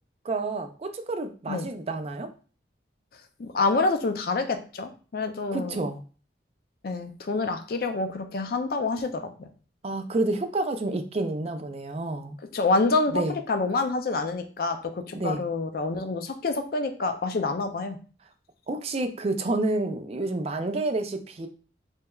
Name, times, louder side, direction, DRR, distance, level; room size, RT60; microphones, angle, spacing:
voice 1, 0.2-2.3 5.5-6.0 9.8-12.4 13.1-13.3 15.1-15.4 18.7-21.5, right 2 dB, 35° right, 7 dB, 0.3 m, -29 dB
voice 2, 3.4-5.8 6.8-9.5 12.5-13.2 13.5-18.0, left 3 dB, 55° left, 7 dB, 0.4 m, -27 dB
3.3 x 3.0 x 2.3 m, 0.38 s
head